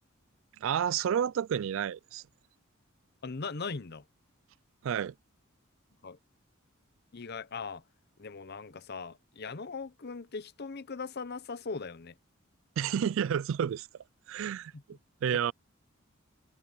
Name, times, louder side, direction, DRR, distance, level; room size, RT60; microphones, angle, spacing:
voice 1, 0.6-2.2 4.8-5.1 12.8-13.9 14.3-14.7 15.2-15.5, right 8 dB, 70° right, 0.3 m, -30 dB
voice 2, 3.2-4.0 6.0-6.2 7.1-7.8 8.2-12.1 14.7-14.8 15.3-15.4, left 4 dB, 50° left, 0.8 m, -39 dB
head